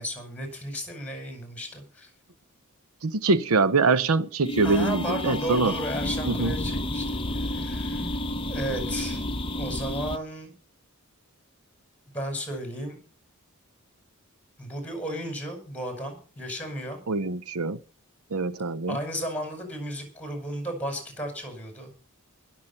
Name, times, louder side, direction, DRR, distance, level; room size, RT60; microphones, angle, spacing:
voice 1, 0.0-2.1 4.6-8.1 8.5-9.2 9.5-10.5 12.1-13.0 14.6-17.0 18.9-21.9, equal, 5° left, 5.7 m, -34 dB
voice 2, 3.0-5.7 6.3-6.5 17.1-17.8 18.3-19.0, right 3 dB, 75° right, 0.7 m, -24 dB
sound 1, 4.4-10.2, left 1 dB, 25° left, 0.9 m, -30 dB
22.0 x 7.4 x 5.7 m
head